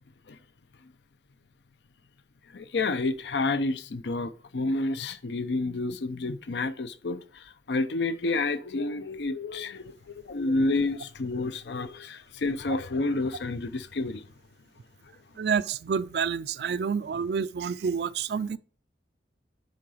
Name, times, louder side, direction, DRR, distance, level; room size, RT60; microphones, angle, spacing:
voice 1, 2.5-14.2, left 2 dB, 80° left, 0.6 m, -29 dB
voice 2, 15.4-18.6, right 6 dB, 70° right, 0.4 m, -28 dB
9.6 x 3.8 x 4.8 m
head